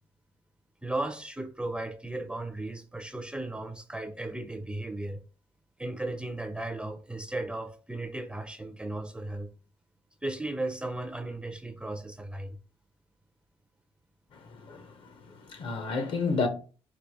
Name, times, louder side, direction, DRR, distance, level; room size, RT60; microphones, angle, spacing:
voice 1, 0.8-5.2 5.8-9.5 10.2-12.6, right 2 dB, 10° right, 0.4 m, -35 dB
voice 2, 14.3-16.5, left 4 dB, 60° left, 1.0 m, -32 dB
4.7 x 2.4 x 4.6 m
cardioid pair, 140°, 10 cm